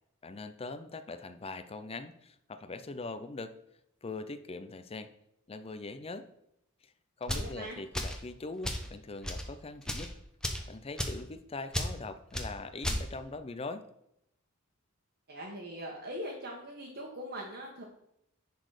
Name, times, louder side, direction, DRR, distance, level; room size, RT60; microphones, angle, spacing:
voice 1, 0.2-3.5 4.0-5.1 5.5-6.3 6.8-6.9 7.2-10.1 10.7-13.8, left 3 dB, 30° left, 11 dB, 0.5 m, -42 dB
sound 1, 7.2-7.5 7.9-8.2 8.6-8.9 9.2-9.5 9.8-10.1 10.4-10.7 11.0-11.2 11.7-11.9 12.3-12.5 12.8-13.0, equal, 5° left, 0.9 m, -33 dB
voice 2, 7.3-7.8 15.3-17.8, equal, 55° right, -2 dB, 1.4 m, -41 dB
10.5 x 4.1 x 4.9 m, 0.78 s
head